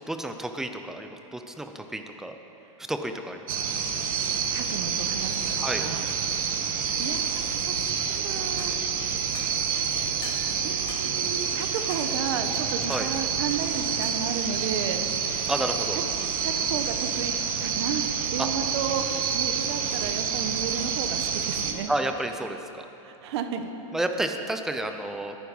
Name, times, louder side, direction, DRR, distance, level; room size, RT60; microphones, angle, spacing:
voice 1, 0.1-2.4 2.8-3.6 5.6-5.8 12.9-13.1 15.5-16.0 18.4-18.5 21.9-22.9 23.9-25.4, right 1 dB, ahead, 6 dB, 0.4 m, -31 dB
sound 1, 3.5-21.7, right 6 dB, 75° right, 1.6 m, -28 dB
voice 2, 4.5-6.1 7.0-8.8 10.6-15.0 15.9-16.0 16.4-18.0 18.3-21.9 23.0-23.7, right 7 dB, 50° right, 7 dB, 1.1 m, -33 dB
sound 2, 8.6-8.8 9.3-9.6 10.2-10.5 10.9-11.1 11.9-12.1 12.9-13.1 14.0-14.2, left 5 dB, 20° left, 1.2 m, -42 dB
21.0 x 9.4 x 5.4 m, 3.0 s
supercardioid pair, 170°, 18 cm